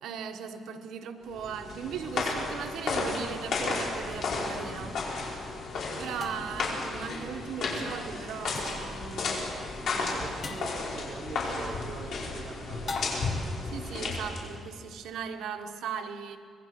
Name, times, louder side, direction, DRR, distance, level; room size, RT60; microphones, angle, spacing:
voice 1, 0.0-5.0 6.0-9.6 9.9-10.6 13.7-16.4, right 7 dB, 85° right, 1.5 m, -38 dB
sound 1, 1.3-14.6, left 3 dB, 60° left, 5.0 m, -33 dB
sound 2, 4.1-4.2 6.2-6.7 8.5-8.9 10.4-10.8 12.9-13.5, left 3 dB, 35° left, 2.1 m, -39 dB
voice 2, 9.9-13.3, right 5 dB, 45° right, 1.7 m, -43 dB
25.0 x 20.5 x 6.2 m
cardioid pair, 155°, 0 cm